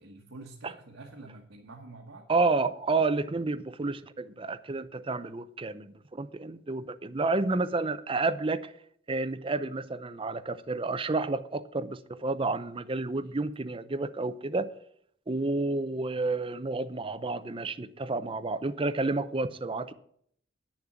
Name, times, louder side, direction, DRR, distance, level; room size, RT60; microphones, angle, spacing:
voice 1, 0.0-2.3 13.2-13.3, right 2 dB, 85° right, 0 dB, 1.4 m, -47 dB
voice 2, 2.3-8.7 9.1-14.7 15.3-19.9, right 3 dB, 30° right, 12 dB, 0.6 m, -30 dB
9.3 x 7.2 x 7.3 m, 0.65 s
head